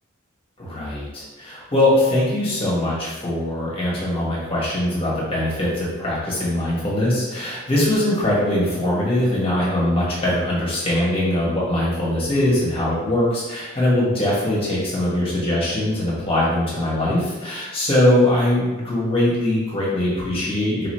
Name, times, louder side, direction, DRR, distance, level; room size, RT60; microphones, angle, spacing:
voice 1, 0.6-20.9, left 1 dB, 30° left, -7 dB, 1.5 m, -21 dB
4.7 x 3.0 x 3.1 m, 1.2 s
head